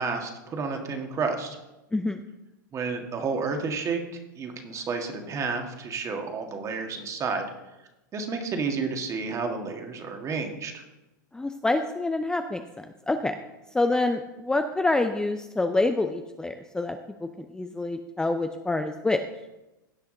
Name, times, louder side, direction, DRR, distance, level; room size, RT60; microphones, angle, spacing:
voice 1, 0.0-1.6 2.7-4.0 4.4-7.4 8.1-10.8, right 4 dB, 30° right, 4 dB, 1.7 m, -30 dB
voice 2, 11.3-13.4 13.7-19.2, left 2 dB, 5° left, 7 dB, 0.5 m, -27 dB
16.5 x 5.7 x 3.9 m, 1.0 s
hypercardioid pair, 105°, 11 cm